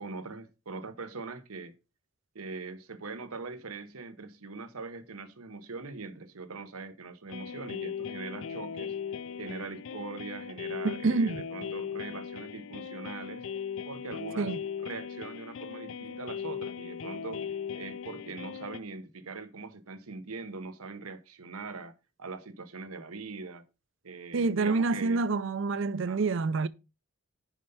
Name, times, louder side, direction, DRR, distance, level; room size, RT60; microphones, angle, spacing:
voice 1, 0.0-1.7 2.3-13.5 13.9-14.5 14.8-17.5 17.7-21.9 22.2-23.6 24.0-25.2 26.1-26.2, right 4 dB, 90° right, 1.0 m, -42 dB
sound 1, 7.3-18.8, left 7 dB, 65° left, 0.4 m, -38 dB
voice 2, 10.8-11.5 14.4-14.6 24.3-26.7, right 3 dB, 60° right, 0.4 m, -27 dB
7.3 x 5.5 x 5.5 m
head